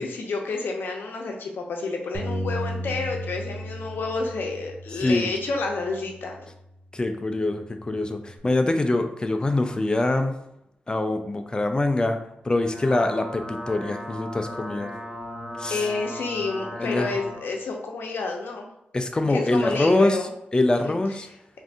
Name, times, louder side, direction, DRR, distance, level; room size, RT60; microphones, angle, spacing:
voice 1, 0.0-6.5 15.7-18.7 19.3-20.3 20.7-21.0, left 3 dB, 80° left, 2 dB, 0.6 m, -29 dB
Bass guitar, 2.1-6.6 7.2-8.4, equal, 50° right, 0.7 m, -36 dB
voice 2, 5.0-5.3 6.9-10.4 10.9-12.2 12.4-14.9 15.6-15.9 16.8-17.1 18.9-20.2 20.5-21.3, left 2 dB, 25° left, 6 dB, 0.4 m, -24 dB
sound 1, 12.4-17.4, equal, ahead, 1.3 m, -37 dB
2.6 x 2.5 x 3.5 m, 0.82 s
cardioid pair, 90°, 4 cm